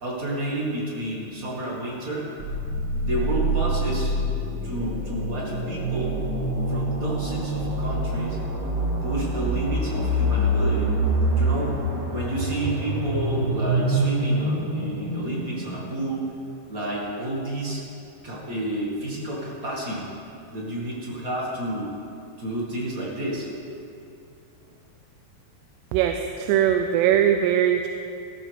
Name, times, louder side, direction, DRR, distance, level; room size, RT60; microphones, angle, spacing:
voice 1, 0.0-2.2 3.0-4.1 4.6-6.2 6.7-8.4 9.0-10.9 11.4-11.8 12.1-16.3 16.7-17.8 18.2-20.1 20.5-21.9 22.4-23.5, right 1 dB, 35° right, -5 dB, 1.5 m, -30 dB
sound 1, 2.4-16.2, right 1 dB, 65° right, 1.0 m, -26 dB
voice 2, 25.9-27.9, right 10 dB, 85° right, 6 dB, 2.7 m, -21 dB
16.0 x 13.5 x 3.6 m, 2.6 s
omnidirectional pair, 4.8 m